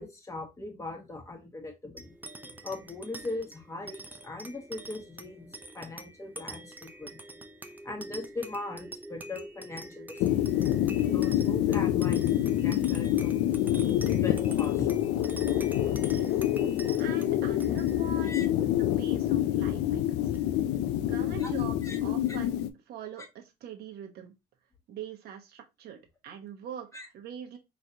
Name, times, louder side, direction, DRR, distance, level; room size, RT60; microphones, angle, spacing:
voice 1, 0.0-2.1 2.6-7.2 7.8-10.5 11.1-13.4 14.0-15.0 18.2-18.5 21.4-21.5 21.8-22.0 22.3-22.4 26.9-27.1, left 2 dB, 15° left, 1.2 m, -40 dB
sound 1, 2.0-20.8, right 1 dB, 10° right, 0.5 m, -45 dB
sound 2, 10.2-22.7, left 12 dB, 85° left, 0.5 m, -27 dB
voice 2, 17.0-18.7 19.0-20.4 21.0-24.3 24.9-27.6, right 8 dB, 70° right, 1.1 m, -43 dB
4.1 x 3.2 x 2.8 m
cardioid pair, 110°, 17 cm